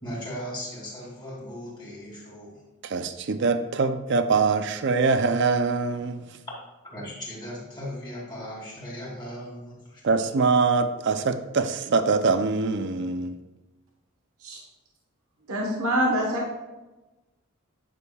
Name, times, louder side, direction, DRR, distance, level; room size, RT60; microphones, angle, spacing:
voice 1, 0.0-2.6 6.8-10.0, equal, 20° left, -4 dB, 2.4 m, -37 dB
voice 2, 2.8-6.3 10.0-13.4, right 4 dB, 55° right, 10 dB, 0.5 m, -23 dB
voice 3, 15.5-16.5, equal, 75° right, -1 dB, 1.2 m, -25 dB
9.6 x 6.5 x 2.3 m, 1.1 s
head